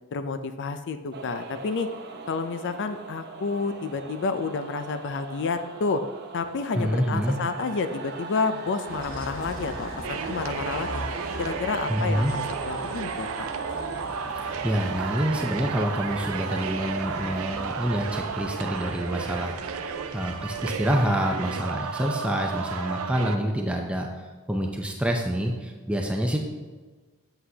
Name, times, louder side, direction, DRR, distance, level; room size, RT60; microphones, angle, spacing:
voice 1, 0.1-1.9 2.3-6.0 6.3-11.0 11.4-13.5, left 4 dB, 55° left, 9 dB, 0.4 m, -30 dB
sound 1, 1.1-19.7, right 4 dB, 50° right, 0.8 m, -40 dB
voice 2, 6.7-7.4 11.9-12.3 14.4-26.4, equal, 5° right, 1 dB, 0.5 m, -27 dB
Bus, 8.9-21.4, left 1 dB, 35° left, 1.6 m, -41 dB
sound 2, 10.0-23.4, right 6 dB, 65° right, 0.5 m, -33 dB
7.9 x 7.8 x 2.8 m, 1.3 s
head